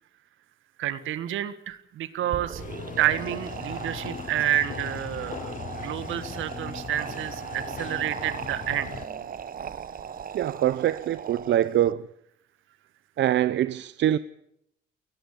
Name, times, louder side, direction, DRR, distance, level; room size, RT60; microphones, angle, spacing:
voice 1, 0.8-2.6 3.0-8.9, right 11 dB, 80° right, 1.7 m, -29 dB
sound 1, 2.2-11.9, right 7 dB, 45° right, 1.1 m, -38 dB
sound 2, 2.6-9.0, left 7 dB, 40° left, 0.8 m, -39 dB
sound 3, 2.9-9.3, equal, 5° left, 5.5 m, -51 dB
voice 2, 10.3-12.1 13.2-14.2, right 12 dB, 65° right, 0.7 m, -24 dB
19.5 x 14.5 x 10.0 m
cardioid pair, 90°, 20 cm